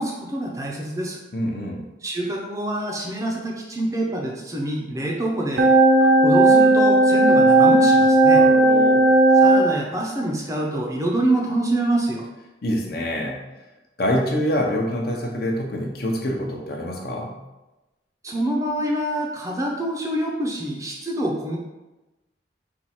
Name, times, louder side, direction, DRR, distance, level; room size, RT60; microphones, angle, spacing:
voice 1, 0.0-1.2 2.0-5.7 6.0-8.4 9.4-12.3 18.2-21.6, right 1 dB, 15° right, -1 dB, 0.5 m, -26 dB
voice 2, 1.3-1.8 8.3-9.1 12.6-13.4 14.0-17.4, equal, 55° left, 0 dB, 0.7 m, -25 dB
sound 1, 5.6-9.7, right 2 dB, 65° right, 0.5 m, -15 dB
4.5 x 2.4 x 4.2 m, 1.0 s
head